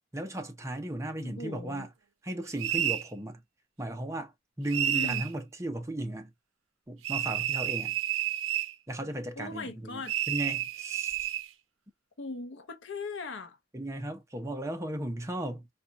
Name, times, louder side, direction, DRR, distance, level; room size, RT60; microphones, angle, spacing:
voice 1, 0.1-1.9 2.2-3.4 3.8-6.3 6.9-8.0 8.9-11.3 13.7-15.7, right 1 dB, 15° right, 0.6 m, -36 dB
voice 2, 1.2-1.9 4.9-5.2 9.4-10.2 12.2-13.6, left 3 dB, 65° left, 0.7 m, -39 dB
sound 1, 2.6-3.1 4.7-5.3 7.0-8.7 10.1-11.5, right 11 dB, 85° right, 0.5 m, -30 dB
4.2 x 2.4 x 2.3 m
head